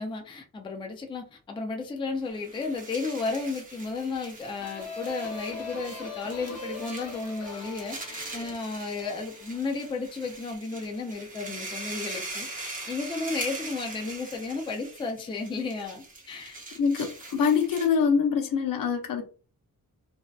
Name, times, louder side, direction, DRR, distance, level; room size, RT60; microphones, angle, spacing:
voice 1, 0.0-16.6, left 3 dB, 15° left, 0.3 m, -33 dB
sound 1, 2.3-18.1, right 2 dB, 25° right, 0.6 m, -42 dB
sound 2, 4.6-10.0, left 3 dB, 45° left, 0.9 m, -41 dB
voice 2, 16.8-19.2, left 6 dB, 70° left, 0.5 m, -24 dB
2.6 x 2.1 x 2.2 m
wide cardioid pair, 165°, 35 cm